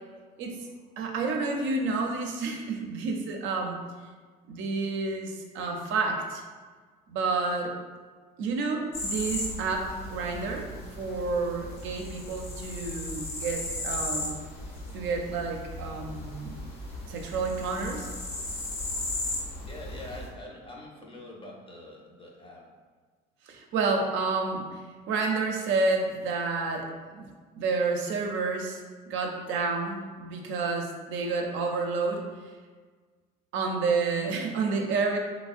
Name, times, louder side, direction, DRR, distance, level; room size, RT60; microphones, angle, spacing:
voice 1, 1.0-3.8 4.5-6.4 7.1-7.7 8.4-10.7 11.0-14.4 14.9-16.6 17.1-18.1 23.4-26.9 27.2-27.3 27.6-28.8 29.1-32.2 33.5-35.2, right 4 dB, 70° right, 2 dB, 0.5 m, -29 dB
sound 1, 8.9-20.3, left 2 dB, 85° left, 0.9 m, -36 dB
voice 2, 19.6-22.7, left 2 dB, 25° left, -1 dB, 0.6 m, -44 dB
3.3 x 2.0 x 2.4 m, 1.5 s
supercardioid pair, 85°, 21 cm